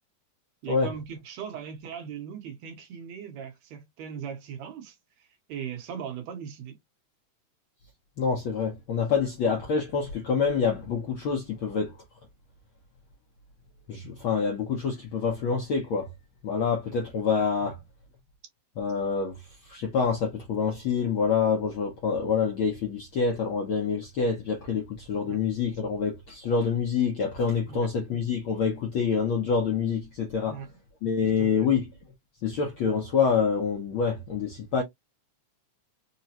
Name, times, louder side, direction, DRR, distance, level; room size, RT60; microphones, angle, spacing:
voice 1, 0.6-6.8 17.6-17.7 25.2-25.4 27.7-27.9 30.5-30.7 31.4-31.7, right 8 dB, 70° right, 2.0 m, -39 dB
voice 2, 8.2-12.0 13.9-16.1 16.4-17.8 18.8-30.6 31.0-31.9 32.4-34.8, left 6 dB, 75° left, 1.2 m, -27 dB
4.9 x 2.1 x 2.8 m
omnidirectional pair, 3.4 m